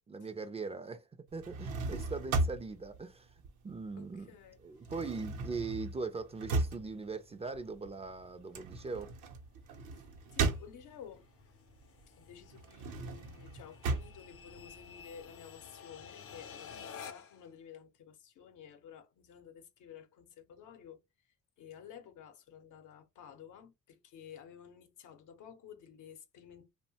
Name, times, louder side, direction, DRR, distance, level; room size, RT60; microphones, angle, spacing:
voice 1, 0.1-1.1 1.3-3.3 3.6-4.3 4.6-9.2, right 4 dB, 20° right, 0.3 m, -40 dB
sound 1, 1.3-4.1 4.4-11.2 11.7-15.2, right 3 dB, 80° right, 0.6 m, -37 dB
voice 2, 4.0-4.9 9.9-11.3 12.1-21.0 21.6-26.7, left 8 dB, 85° left, 0.7 m, -53 dB
sound 2, 7.2-17.5, left 7 dB, 50° left, 0.5 m, -53 dB
2.7 x 2.1 x 2.7 m
cardioid pair, 90°, 30 cm